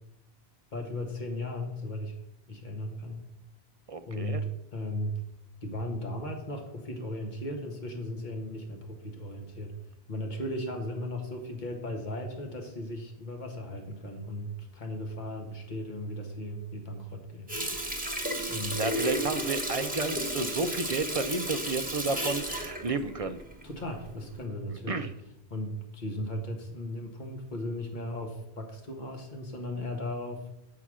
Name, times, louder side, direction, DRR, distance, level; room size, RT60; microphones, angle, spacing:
voice 1, 0.7-2.2 2.5-3.3 4.1-5.2 5.6-9.7 10.1-17.5 18.5-18.8 23.6-25.1 25.5-30.5, left 1 dB, 50° left, 3 dB, 1.5 m, -36 dB
voice 2, 3.9-4.4 18.8-23.4 24.9-25.1, right 3 dB, 45° right, 9 dB, 0.5 m, -32 dB
Water tap faucet, 17.5-23.9 24.3-24.4, right 1 dB, 10° right, 1.2 m, -33 dB
8.4 x 5.7 x 6.2 m, 0.84 s
omnidirectional pair, 1.1 m